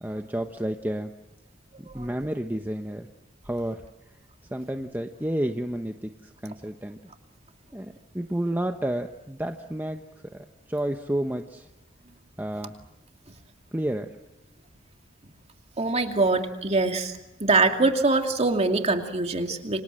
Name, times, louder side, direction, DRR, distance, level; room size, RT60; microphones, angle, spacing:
voice 1, 0.0-1.1 1.8-3.1 3.4-3.8 4.5-6.1 6.4-7.0 7.7-10.0 10.3-11.7 12.4-12.7 13.7-14.1, right 1 dB, 10° right, 5 dB, 1.0 m, -30 dB
voice 2, 15.8-17.1 17.4-19.8, right 3 dB, 35° right, 5 dB, 2.6 m, -23 dB
28.5 x 25.5 x 7.7 m, 0.91 s
head